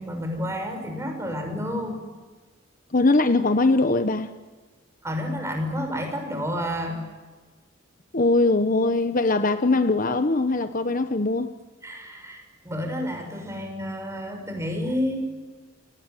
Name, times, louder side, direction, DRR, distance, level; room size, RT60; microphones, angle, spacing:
voice 1, 0.0-2.0 5.0-7.0 11.8-15.2, equal, 15° right, 3 dB, 6.3 m, -30 dB
voice 2, 2.9-4.3 8.1-11.5, left 2 dB, 45° left, 10 dB, 1.1 m, -21 dB
28.0 x 20.0 x 9.5 m, 1.3 s
head